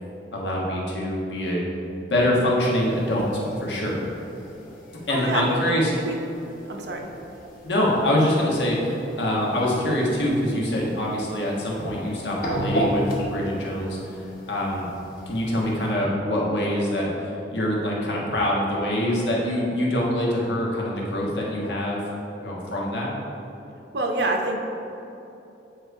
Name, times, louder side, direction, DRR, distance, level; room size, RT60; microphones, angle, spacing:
voice 1, 0.3-1.6 2.1-4.0 5.1-5.9 7.6-14.9 15.3-22.0 22.4-23.1, left 1 dB, 90° left, -4 dB, 1.4 m, -24 dB
sound 1, 2.7-15.9, equal, 50° left, 1.0 m, -35 dB
voice 2, 5.1-6.2 6.7-7.0 23.9-24.7, right 2 dB, 70° right, 2 dB, 0.8 m, -26 dB
8.8 x 3.2 x 4.6 m, 3.0 s
head